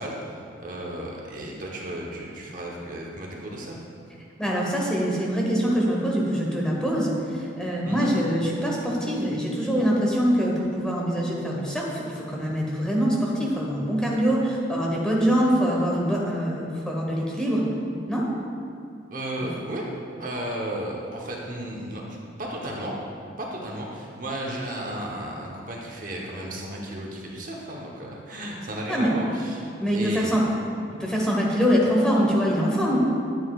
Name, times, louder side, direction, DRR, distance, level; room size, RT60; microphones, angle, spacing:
voice 1, 0.0-3.8 7.8-8.1 19.1-19.8 20.2-23.0 23.4-30.4, right 1 dB, 45° right, -1 dB, 1.0 m, -34 dB
voice 2, 4.4-17.6 18.1-18.2 28.9-29.1 29.8-30.4 31.0-33.0, equal, 5° left, -4 dB, 1.1 m, -24 dB
9.2 x 9.1 x 2.4 m, 2.4 s
head